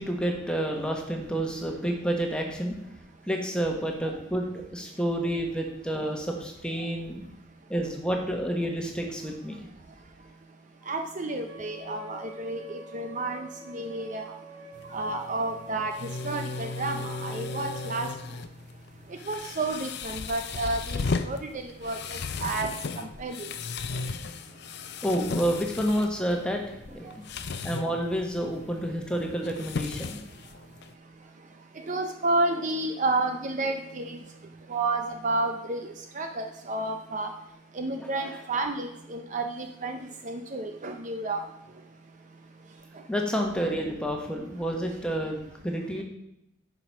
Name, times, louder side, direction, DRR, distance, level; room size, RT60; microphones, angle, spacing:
voice 1, 0.0-2.7 3.3-7.2 7.7-9.6 25.0-26.6 26.9-27.1 27.6-30.2 38.0-38.4 43.1-46.0, equal, 5° left, 1 dB, 1.3 m, -29 dB
voice 2, 10.9-13.5 13.7-14.3 14.9-18.1 19.3-22.0 22.4-22.7 23.2-23.3 31.9-34.2 34.7-35.8 36.2-37.3 37.8-40.0 40.2-41.4, right 2 dB, 35° right, 5 dB, 0.6 m, -30 dB
Wind instrument woodwind instrument, 11.5-18.0, equal, 60° right, 1.3 m, -47 dB
sound 1, 14.7-30.9, left 4 dB, 55° left, 0.5 m, -36 dB
9.8 x 5.0 x 6.1 m, 0.81 s
head